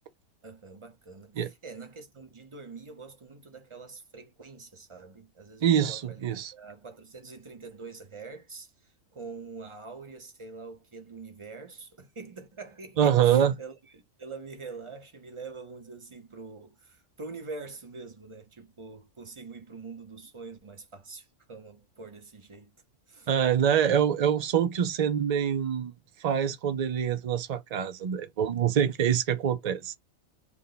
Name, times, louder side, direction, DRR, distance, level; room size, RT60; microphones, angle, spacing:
voice 1, 0.4-22.8 23.1-23.3, right 4 dB, 25° right, 0.8 m, -45 dB
voice 2, 5.6-6.5 13.0-13.5 23.3-25.9 26.2-29.9, right 9 dB, 65° right, 0.4 m, -25 dB
3.4 x 2.2 x 3.9 m
omnidirectional pair, 1.4 m